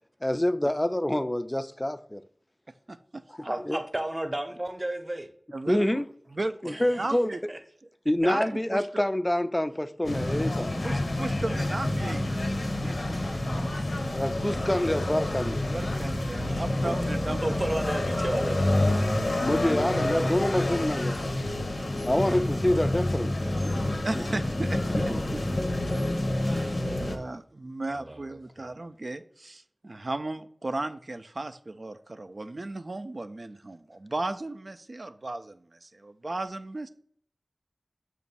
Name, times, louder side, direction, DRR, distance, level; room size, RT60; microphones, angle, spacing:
voice 1, 0.2-2.2 3.4-3.8 5.7-6.0 6.6-7.3 8.1-10.7 12.8-13.1 14.1-15.6 19.2-21.3 22.1-23.4 24.1-24.2 25.1-25.2, left 1 dB, 20° left, 0.3 m, -27 dB
voice 2, 2.9-3.2 5.5-6.1 6.3-7.4 8.1-9.0 10.8-12.2 12.6-13.0 15.7-17.6 23.7-25.4 26.4-36.9, right 2 dB, 65° right, 0.4 m, -35 dB
voice 3, 3.4-5.3 6.7-7.1 7.5-7.6 11.5-11.6 14.7-14.9 16.8-17.0 17.4-18.8 26.8-27.0 27.9-28.4, right 1 dB, 30° right, 0.7 m, -33 dB
sound 1, 10.0-27.2, left 1 dB, 90° left, 0.8 m, -28 dB
7.0 x 2.5 x 5.3 m
wide cardioid pair, 50°, 0 cm